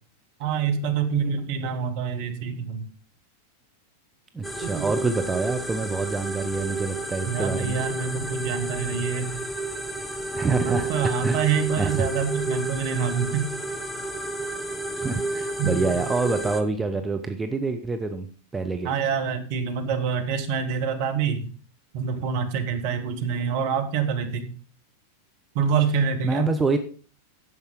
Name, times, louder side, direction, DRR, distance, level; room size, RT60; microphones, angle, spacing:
voice 1, 0.4-2.8 4.6-4.9 7.3-9.4 10.6-13.5 15.6-15.9 18.8-21.4 21.9-24.5 25.5-26.5, right 6 dB, 50° right, 6 dB, 1.6 m, -26 dB
voice 2, 4.3-7.8 10.3-11.4 11.8-12.1 14.9-18.3 18.5-18.9 26.2-26.8, right 3 dB, 10° right, 6 dB, 0.8 m, -26 dB
sound 1, 4.4-16.6, right 2 dB, 5° left, 1.1 m, -31 dB
10.0 x 7.1 x 5.2 m, 0.40 s
figure-of-eight pair, 90°, 0 cm